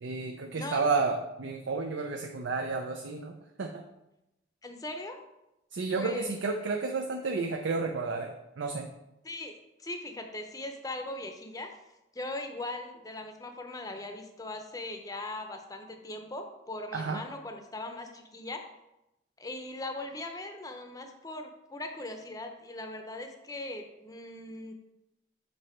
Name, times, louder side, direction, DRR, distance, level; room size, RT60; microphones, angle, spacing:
voice 1, 0.0-3.8 5.7-8.9 16.9-17.2, right 4 dB, 85° right, 3 dB, 0.5 m, -31 dB
voice 2, 0.5-0.9 4.6-5.2 6.0-6.3 9.2-9.5 9.8-11.7 12.1-18.6 19.4-24.7, left 2 dB, 20° left, 5 dB, 0.6 m, -39 dB
6.9 x 4.0 x 4.3 m, 0.91 s
head